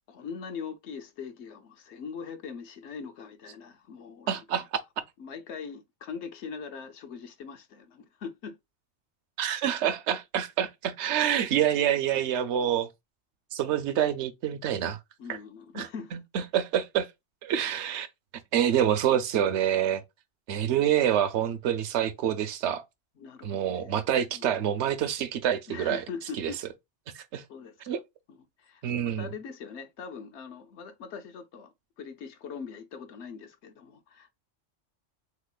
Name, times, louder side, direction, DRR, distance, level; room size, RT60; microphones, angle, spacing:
voice 1, 0.1-4.7 5.2-8.6 15.2-16.1 23.2-23.9 24.3-24.5 25.7-26.6 27.5-28.0 28.3-34.3, left 6 dB, 70° left, 0.9 m, -41 dB
voice 2, 4.3-4.6 9.4-12.9 13.5-15.0 15.3-15.4 15.7-15.9 16.1-17.1 17.4-18.1 18.5-20.0 20.5-22.8 23.4-26.0 26.4-26.5 27.1-27.4 27.9-28.0 28.8-29.3, right 10 dB, 70° right, 0.9 m, -27 dB
3.6 x 2.9 x 2.3 m
omnidirectional pair, 1.2 m